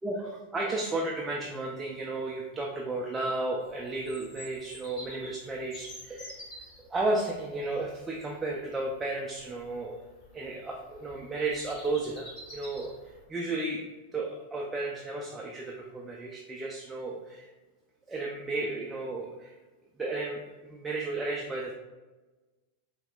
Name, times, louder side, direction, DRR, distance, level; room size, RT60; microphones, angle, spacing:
voice 1, 0.0-6.5 6.8-10.0 10.3-12.9 13.3-13.9 14.1-17.5 18.1-19.5 20.0-21.7, right 2 dB, 15° right, -2 dB, 0.4 m, -33 dB
Bird vocalization bird call bird song, 3.6-13.2, left 1 dB, 35° left, 1.3 m, -49 dB
5.6 x 2.0 x 2.3 m, 1.2 s
figure-of-eight pair, 90°, 0 cm